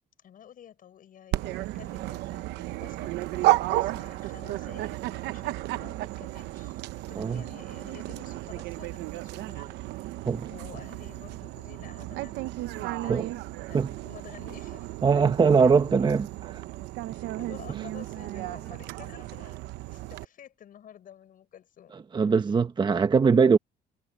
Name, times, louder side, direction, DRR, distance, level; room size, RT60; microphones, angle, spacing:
voice 1, 0.2-13.4 13.7-15.2 17.1-19.6 19.9-21.9 22.9-23.1, left 10 dB, 55° left, 6.7 m, -51 dB
Dog, 1.3-20.2, right 17 dB, 85° right, 0.9 m, -33 dB
voice 2, 15.0-16.6 22.1-23.6, right 5 dB, 25° right, 1.1 m, -21 dB
cardioid pair, 110°, 17 cm